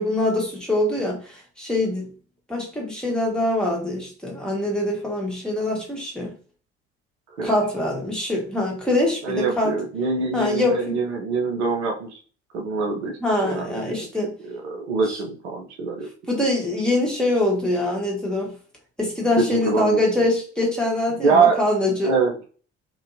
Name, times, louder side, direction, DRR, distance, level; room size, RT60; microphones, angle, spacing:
voice 1, 0.0-2.1 2.5-6.3 7.4-9.8 10.3-11.0 13.2-14.3 15.1-15.2 16.3-18.6 19.0-22.1, left 1 dB, ahead, 1.1 m, -24 dB
voice 2, 9.2-12.1 12.5-13.1 13.4-14.1 14.4-16.1 19.4-20.0 21.2-21.6 22.0-22.3, right 4 dB, 80° right, 0.6 m, -23 dB
2.9 x 2.5 x 2.6 m
figure-of-eight pair, 55°, 34 cm